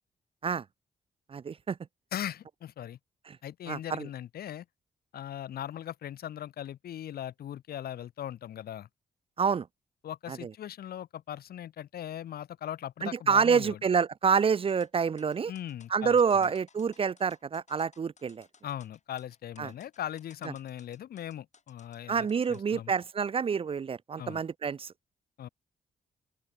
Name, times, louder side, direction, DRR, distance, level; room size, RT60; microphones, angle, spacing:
voice 1, 1.3-1.8 3.7-4.1 9.4-9.7 10.3-10.5 13.0-15.5 15.9-18.5 19.6-19.7 22.1-24.9, right 6 dB, 35° right, 0.4 m, -27 dB
voice 2, 2.1-3.0 3.4-4.7 5.1-8.9 10.0-13.8 15.5-16.5 18.6-22.9 24.2-24.4 25.4-25.5, left 11 dB, 75° left, 0.6 m, -39 dB
sound 1, 14.7-22.6, left 5 dB, 45° left, 7.9 m, -60 dB
open air
cardioid pair, 80°, 16 cm